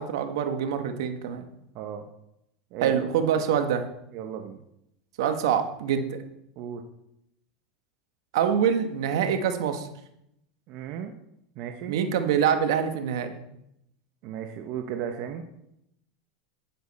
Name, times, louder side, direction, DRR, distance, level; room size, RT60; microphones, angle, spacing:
voice 1, 0.0-1.4 2.8-3.8 5.2-6.2 8.3-9.9 11.9-13.4, right 8 dB, 75° right, 7 dB, 1.5 m, -25 dB
voice 2, 4.1-4.6 6.6-6.8 10.7-11.1 11.6-12.0 14.2-15.4, right 9 dB, 55° right, 5 dB, 1.1 m, -35 dB
10.5 x 10.0 x 4.3 m, 0.79 s
hypercardioid pair, 110°, 2 cm